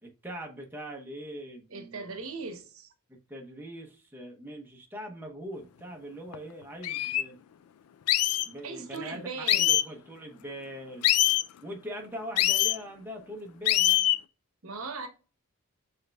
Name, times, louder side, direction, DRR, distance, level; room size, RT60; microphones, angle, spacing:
voice 1, 0.0-2.2 3.1-7.4 8.5-11.1 11.6-14.0, equal, 10° right, 0.8 m, -42 dB
voice 2, 1.7-2.9 8.6-9.7 14.6-15.1, right 4 dB, 70° right, 0.9 m, -38 dB
sound 1, 6.3-6.4 6.8-7.2 8.1-8.5 9.5-9.9 11.0-11.4 12.4-12.8 13.7-14.2, left 14 dB, 85° left, 0.3 m, -23 dB
6.4 x 3.3 x 2.2 m
head